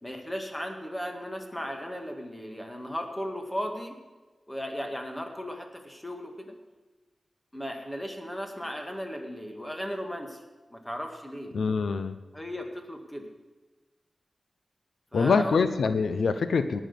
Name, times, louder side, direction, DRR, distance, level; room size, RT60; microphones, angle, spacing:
voice 1, 0.0-4.0 4.5-6.5 7.5-10.4 10.7-11.5 12.3-13.3 15.1-15.6, equal, 10° left, 3 dB, 1.9 m, -36 dB
voice 2, 11.5-12.2 15.1-16.8, left 5 dB, 90° left, 11 dB, 0.6 m, -24 dB
18.0 x 6.2 x 6.9 m, 1.2 s
wide cardioid pair, 90°, 0 cm